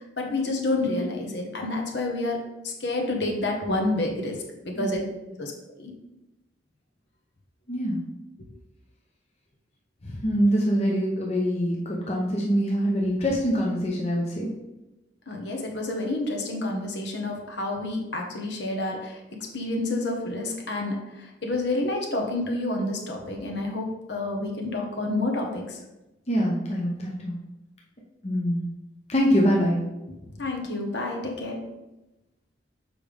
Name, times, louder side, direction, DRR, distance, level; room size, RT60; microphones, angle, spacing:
voice 1, 0.2-4.4 4.6-5.0 5.4-5.5 5.8-5.9 15.3-21.0 21.4-25.8 30.4-31.6, left 2 dB, 65° left, 1 dB, 1.2 m, -29 dB
voice 2, 7.7-8.0 10.1-14.5 26.3-27.3 28.2-28.6 29.1-29.8, equal, 35° left, -2 dB, 0.9 m, -24 dB
6.8 x 5.2 x 3.4 m, 0.98 s
head